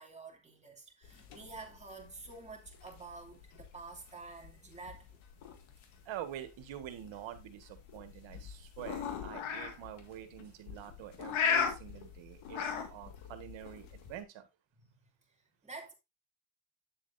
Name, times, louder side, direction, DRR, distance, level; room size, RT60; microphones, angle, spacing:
voice 1, 0.0-5.2 11.2-11.3 14.8-14.9 15.6-15.9, right 3 dB, 15° right, 2.6 m, -49 dB
sound 1, 1.0-14.2, left 7 dB, 85° left, 2.0 m, -39 dB
voice 2, 6.1-14.5, right 11 dB, 80° right, 1.7 m, -46 dB
9.3 x 7.4 x 2.7 m
cardioid pair, 120°, 46 cm